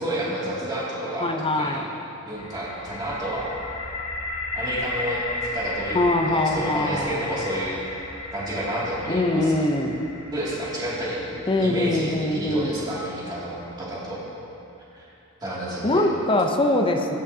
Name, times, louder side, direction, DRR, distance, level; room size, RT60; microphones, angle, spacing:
voice 1, 0.0-1.9 2.2-3.5 4.5-6.0 6.2-7.8 8.3-9.6 10.3-11.2 11.5-14.2 14.9-15.1 15.4-16.0, right 1 dB, 20° right, -8 dB, 2.4 m, -30 dB
voice 2, 1.2-1.9 5.9-7.2 9.1-10.0 11.5-12.7 15.8-17.2, left 2 dB, 25° left, 4 dB, 0.6 m, -23 dB
sound 1, 2.3-14.2, left 2 dB, 75° left, 1.3 m, -35 dB
17.0 x 7.9 x 2.8 m, 2.9 s
head